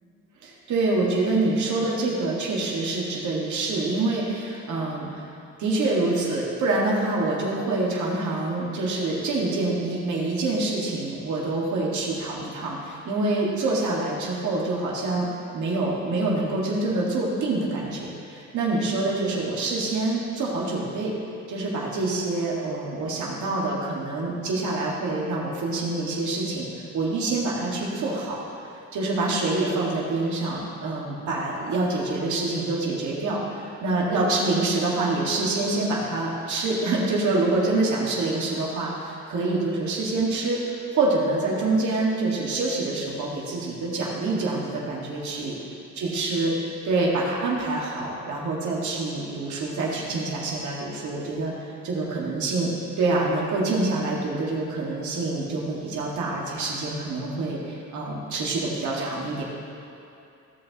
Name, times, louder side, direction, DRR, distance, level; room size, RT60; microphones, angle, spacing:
voice 1, 0.4-5.2 5.6-15.3 15.5-21.1 21.5-28.5 28.9-45.5 46.0-51.5 51.8-52.7 53.0-59.4, right 2 dB, 70° right, -4 dB, 2.0 m, -26 dB
16.5 x 5.5 x 3.0 m, 2.6 s
cardioid pair, 90°, 30 cm